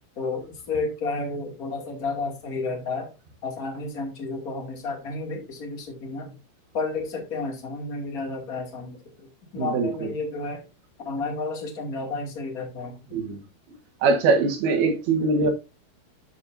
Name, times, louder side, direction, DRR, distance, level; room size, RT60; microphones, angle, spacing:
voice 1, 0.2-3.1 3.4-6.3 6.7-9.0 9.5-10.6 11.0-13.0, left 3 dB, 25° left, 2.1 m, -31 dB
voice 2, 9.6-10.1 13.1-13.4 14.0-15.5, right 3 dB, 65° right, 3.4 m, -22 dB
12.0 x 5.7 x 2.7 m
omnidirectional pair, 5.0 m